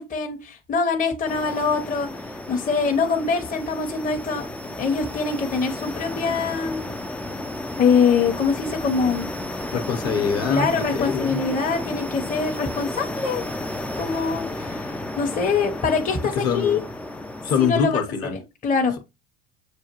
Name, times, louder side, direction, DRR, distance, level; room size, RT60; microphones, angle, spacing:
voice 1, 0.0-2.1 2.5-4.5 4.8-6.9 7.8-9.3 10.5-13.4 14.0-14.8 15.2-16.8 17.6-18.9, left 5 dB, 25° left, 0.9 m, -23 dB
sound 1, 1.3-17.7, left 1 dB, 5° left, 0.3 m, -32 dB
voice 2, 9.7-11.4 16.3-16.8 17.4-18.3, left 6 dB, 50° left, 1.1 m, -24 dB
6.5 x 2.3 x 3.0 m
hypercardioid pair, 70°, 31 cm